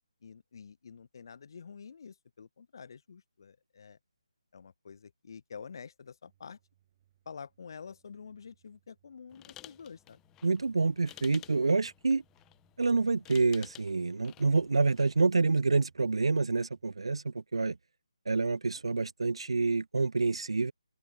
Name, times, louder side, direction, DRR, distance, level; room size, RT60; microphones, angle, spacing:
voice 1, 0.2-4.0 4.5-6.6 7.2-10.2, left 6 dB, 40° left, 1.0 m, -48 dB
sound 1, 6.3-17.2, right 12 dB, 25° right, 7.4 m, -71 dB
sound 2, 9.3-15.2, left 16 dB, 10° left, 1.0 m, -54 dB
voice 2, 10.4-12.2 12.8-17.8 18.3-20.7, right 3 dB, 60° right, 0.6 m, -27 dB
open air
figure-of-eight pair, 150°, 3 cm